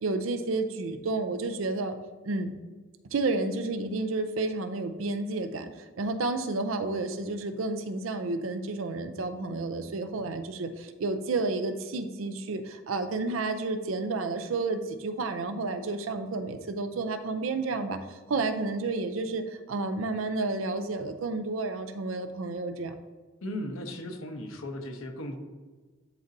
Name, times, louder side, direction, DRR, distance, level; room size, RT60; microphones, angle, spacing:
voice 1, 0.0-2.0 2.2-2.5 3.1-22.9, right 3 dB, 75° right, 8 dB, 0.5 m, -31 dB
voice 2, 23.4-25.4, left 1 dB, 90° left, 4 dB, 0.9 m, -36 dB
11.0 x 4.0 x 2.6 m, 1.4 s
head